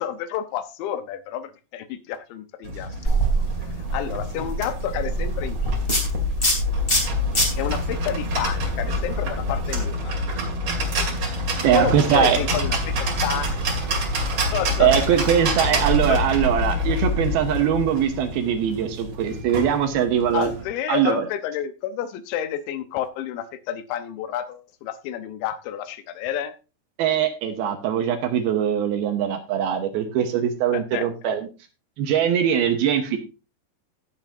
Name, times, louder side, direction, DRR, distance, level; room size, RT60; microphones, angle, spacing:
voice 1, 0.0-3.2 3.6-5.8 7.6-10.4 11.7-13.8 14.2-14.3 14.5-14.9 15.6-16.2 20.3-26.5 30.7-31.1, left 10 dB, 80° left, 10 dB, 3.1 m, -30 dB
sound 1, 2.6-20.7, left 1 dB, 45° right, 2.2 m, -27 dB
sound 2, 3.0-9.7, right 2 dB, 15° left, 2.0 m, -26 dB
voice 2, 11.6-12.4 14.8-20.5 20.9-21.2 27.0-31.5 32.0-33.2, right 9 dB, 75° right, 7 dB, 2.4 m, -21 dB
17.5 x 7.5 x 2.6 m, 0.31 s
omnidirectional pair, 5.5 m